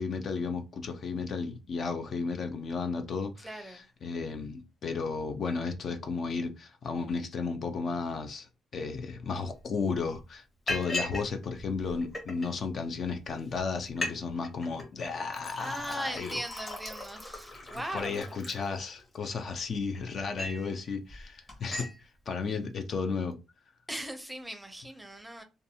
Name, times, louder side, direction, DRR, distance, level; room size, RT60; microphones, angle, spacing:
voice 1, 0.0-16.4 17.5-21.9 22.3-23.4, left 4 dB, 55° left, 0.5 m, -34 dB
voice 2, 3.4-3.9 15.6-18.4 23.9-25.4, right 1 dB, 5° right, 0.6 m, -39 dB
Liquid, 9.5-9.6 9.9-10.2 10.7-11.3 11.6-12.5 13.1-13.2 13.5-13.6 13.9-14.2 14.4-14.9 15.3-19.1 19.7-20.7 21.1-21.2 21.5-21.9, left 1 dB, 30° left, 1.1 m, -38 dB
2.6 x 2.3 x 2.7 m
cardioid pair, 90°, 0 cm